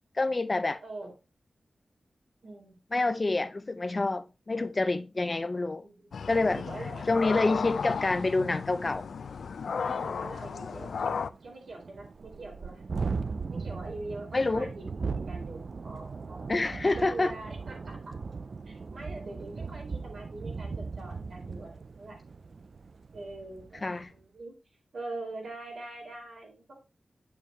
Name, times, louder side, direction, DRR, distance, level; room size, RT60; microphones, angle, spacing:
voice 1, 0.2-0.8 2.9-5.8 6.3-6.6 7.1-9.1 14.3-14.7 16.5-17.3 23.8-24.1, left 3 dB, 30° left, 0.5 m, -27 dB
voice 2, 0.8-1.1 2.4-2.8 5.8-6.1 6.5-7.0 7.5-7.8 9.7-12.8 13.5-16.5 16.8-18.0 18.7-22.4 23.1-24.6 24.9-26.7, right 2 dB, 65° right, 4.0 m, -43 dB
sound 1, 6.1-11.3, left 6 dB, 85° left, 0.5 m, -34 dB
Thunderstorm, 9.4-9.5 9.9-10.0 10.3-23.9, right 4 dB, 50° right, 0.4 m, -38 dB
9.4 x 6.9 x 3.0 m
wide cardioid pair, 155°, 0 cm